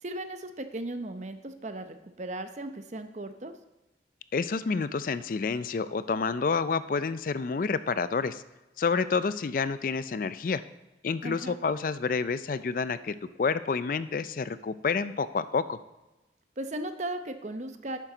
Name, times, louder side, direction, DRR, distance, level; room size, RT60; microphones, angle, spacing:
voice 1, 0.0-3.5 11.2-11.6 16.6-18.0, right 1 dB, 40° right, 8 dB, 0.7 m, -36 dB
voice 2, 4.3-8.4 8.8-10.6 11.0-15.8, left 5 dB, 50° left, 14 dB, 0.4 m, -29 dB
11.5 x 9.2 x 3.9 m, 1.0 s
head